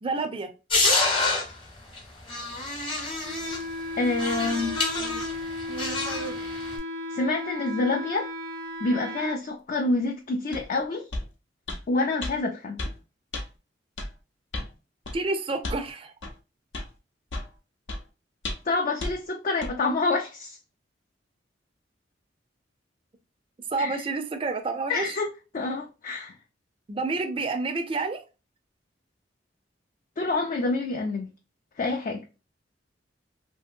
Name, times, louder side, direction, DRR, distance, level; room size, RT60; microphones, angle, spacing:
voice 1, 0.0-0.5 15.1-16.1 23.7-25.2 26.9-28.2, right 3 dB, 30° right, 0.4 m, -29 dB
sound 1, 0.7-1.5 2.0-2.1 2.3-3.6 4.2-6.8, left 3 dB, 30° left, 0.9 m, -27 dB
Wind instrument woodwind instrument, 3.2-9.4, left 1 dB, 80° right, 0.7 m, -35 dB
voice 2, 4.0-4.8 7.1-8.3 8.8-11.1 11.9-12.8 18.6-20.6 23.8-24.0 24.9-25.3 25.5-26.4 30.2-31.3 31.8-32.2, left 3 dB, 45° left, 0.4 m, -27 dB
sound 2, 10.5-10.7 11.1-11.3 11.7-11.8 12.2-12.3 12.8-13.0 13.3-13.5 14.0-14.1 14.5-14.7 15.1-15.2 15.6-15.8 16.2-16.3 16.7-16.9 17.3-17.5 17.9-18.0 18.4-18.7 19.0-19.1 19.6-19.7, left 2 dB, 80° left, 0.7 m, -33 dB
2.8 x 2.7 x 2.5 m
head